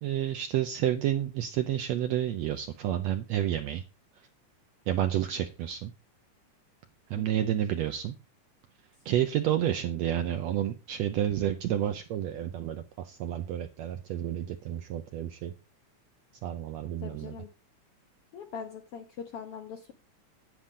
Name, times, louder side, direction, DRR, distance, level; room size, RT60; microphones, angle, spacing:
voice 1, 0.0-3.8 4.9-5.9 7.1-8.1 9.1-15.5 16.4-17.3, right 11 dB, 75° right, 8 dB, 1.6 m, -30 dB
voice 2, 7.2-7.5 17.0-17.5 18.3-19.9, left 7 dB, 70° left, 5 dB, 1.5 m, -42 dB
9.9 x 8.6 x 3.7 m, 0.31 s
omnidirectional pair, 3.7 m